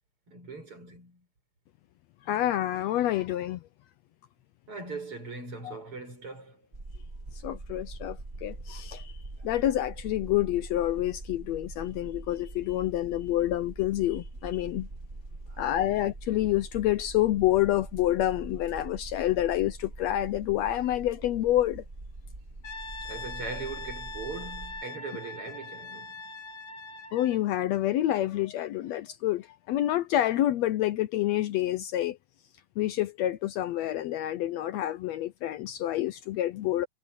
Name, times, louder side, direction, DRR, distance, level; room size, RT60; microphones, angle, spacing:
voice 1, 0.3-1.3 4.7-6.6 15.5-15.6 23.0-26.1, right 4 dB, 45° right, 8.1 m, -40 dB
voice 2, 2.3-3.6 5.6-5.7 7.3-14.9 15.6-21.8 27.1-32.2 32.8-36.9, left 13 dB, 75° left, 1.8 m, -28 dB
sound 1, 6.7-24.8, right 2 dB, 20° right, 1.5 m, -43 dB
Brass instrument, 22.6-27.5, left 3 dB, 40° left, 3.0 m, -42 dB
omnidirectional pair, 3.4 m